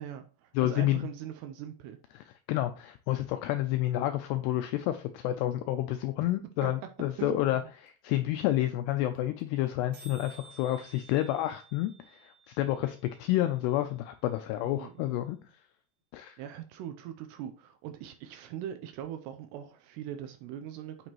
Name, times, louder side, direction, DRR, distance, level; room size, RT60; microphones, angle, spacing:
voice 1, 0.0-2.0 6.6-6.7 7.2-7.7 14.6-15.3 16.4-21.1, right 10 dB, 80° right, 2.5 m, -41 dB
voice 2, 0.6-1.1 2.5-15.4 16.1-16.4, left 14 dB, 85° left, 2.3 m, -29 dB
sound 1, 7.9-8.0 8.1-8.2 8.4-8.6 8.9-9.0 9.2-9.4 9.7-9.8 9.9-13.9, right 3 dB, 55° right, 3.5 m, -55 dB
9.0 x 6.1 x 3.0 m
omnidirectional pair, 5.3 m